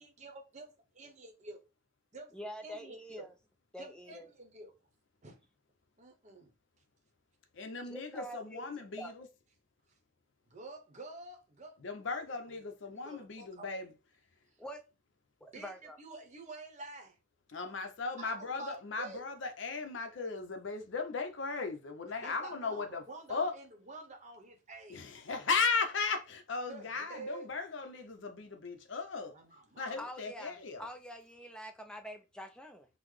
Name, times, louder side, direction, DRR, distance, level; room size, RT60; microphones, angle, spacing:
voice 1, 0.0-0.7 1.0-1.6 2.1-2.3 2.6-3.3 3.8-4.7 5.2-5.4 6.0-6.5 10.5-11.8 13.0-13.7 15.5-15.7 16.0-17.2 18.2-19.2 22.2-25.0 26.7-27.5 29.3-30.0, right 3 dB, 35° right, 0.8 m, -48 dB
voice 2, 2.3-3.3 3.7-4.3 7.8-9.1 14.6-14.8 15.4-16.0 30.0-32.9, equal, 5° left, 0.4 m, -46 dB
voice 3, 7.5-9.3 11.8-13.9 17.5-23.0 23.3-23.5 24.9-29.3 29.8-30.9, left 4 dB, 65° left, 0.6 m, -36 dB
3.8 x 2.0 x 3.1 m
head